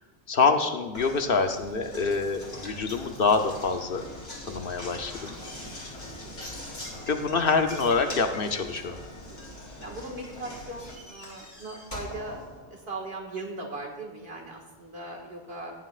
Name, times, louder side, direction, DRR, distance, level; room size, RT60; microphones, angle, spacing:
voice 1, 0.3-4.0 4.4-5.4 7.1-9.0, left 4 dB, 65° left, 6 dB, 1.0 m, -26 dB
Knock, 0.9-13.1, left 1 dB, 80° left, 2.6 m, -42 dB
voice 2, 6.1-6.5 9.3-9.4 9.8-12.4 12.7-15.7, right 2 dB, 70° right, 0 dB, 2.1 m, -39 dB
17.0 x 9.4 x 2.5 m, 1.1 s
omnidirectional pair, 1.1 m